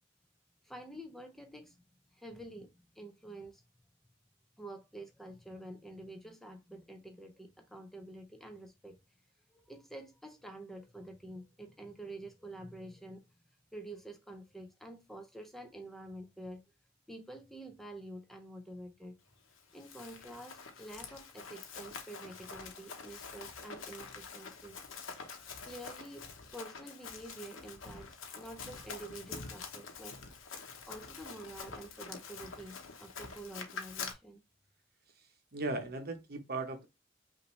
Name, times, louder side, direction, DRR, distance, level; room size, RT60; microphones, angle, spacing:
voice 1, 0.6-1.8 2.1-2.7 2.9-3.6 4.6-9.0 9.5-13.3 13.7-16.6 17.1-19.1 19.7-24.8 25.6-26.3 26.5-30.2 30.8-34.4, right 1 dB, ahead, 0.5 m, -48 dB
Run, 19.6-34.1, left 5 dB, 80° left, 0.9 m, -46 dB
voice 2, 35.5-36.8, right 2 dB, 50° right, 0.8 m, -37 dB
5.6 x 2.6 x 3.1 m
head